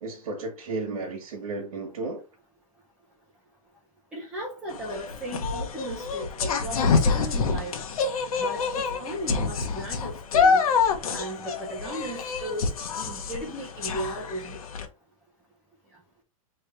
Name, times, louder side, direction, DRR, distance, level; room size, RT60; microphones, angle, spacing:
voice 1, 0.0-2.2, right 3 dB, 75° right, 1.6 m, -33 dB
voice 2, 4.1-7.8 8.4-10.6 11.1-12.7 13.0-14.6, right 1 dB, 5° right, 0.6 m, -36 dB
sound 1, 4.7-14.9, left 5 dB, 90° left, 1.2 m, -26 dB
3.4 x 3.3 x 4.3 m
supercardioid pair, 180°, 18 cm